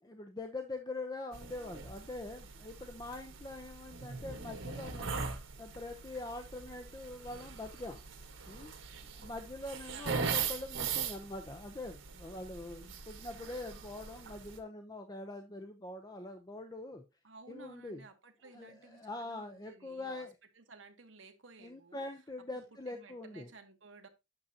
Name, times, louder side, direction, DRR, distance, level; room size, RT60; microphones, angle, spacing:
voice 1, 0.0-5.2 5.6-8.0 8.5-8.7 9.1-17.0 17.5-18.0 18.5-20.3 21.6-23.5, left 2 dB, 20° left, 6 dB, 0.7 m, -44 dB
sound 1, 1.3-14.6, right 5 dB, 90° right, 1.4 m, -41 dB
voice 2, 9.9-10.6 17.2-20.3 20.6-22.0 22.4-24.1, right 4 dB, 70° right, 7 dB, 1.2 m, -56 dB
8.8 x 6.5 x 2.8 m, 0.24 s
head